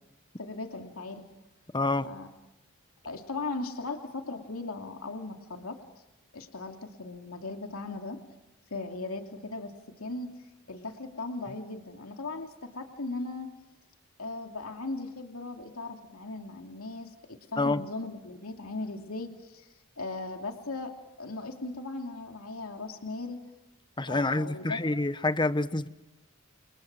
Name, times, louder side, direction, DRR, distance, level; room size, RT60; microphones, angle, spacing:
voice 1, 0.4-1.3 2.0-2.3 3.0-5.8 6.3-8.2 8.7-10.3 10.7-13.5 14.2-19.7 20.0-23.4 24.1-24.8, left 3 dB, 80° left, 2.7 m, -38 dB
voice 2, 1.7-2.1 17.6-17.8 24.0-25.9, left 2 dB, 20° left, 1.1 m, -27 dB
29.5 x 29.0 x 6.1 m
head